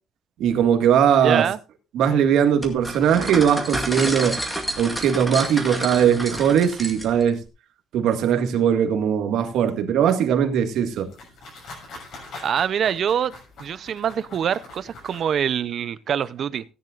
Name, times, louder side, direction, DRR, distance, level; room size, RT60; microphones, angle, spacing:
voice 1, 0.4-1.5 1.9-4.4 4.8-7.4 7.9-11.1, right 8 dB, 70° right, 1.8 m, -20 dB
voice 2, 1.2-1.6 12.4-13.3 13.6-16.6, right 8 dB, 40° right, 0.6 m, -24 dB
sound 1, 2.6-7.3, right 1 dB, ahead, 2.0 m, -30 dB
sound 2, 10.7-15.6, left 2 dB, 55° left, 6.7 m, -43 dB
16.5 x 10.5 x 2.5 m
cardioid pair, 175°, 0 cm